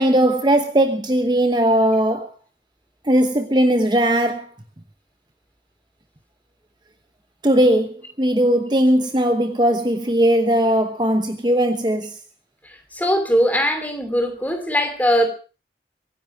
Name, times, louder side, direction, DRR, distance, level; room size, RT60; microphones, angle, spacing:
voice 1, 0.0-2.3 3.0-4.5 7.4-12.2, right 1 dB, 25° right, 1.1 m, -18 dB
voice 2, 12.6-15.3, equal, 10° left, 2.7 m, -20 dB
23.5 x 10.0 x 4.8 m
head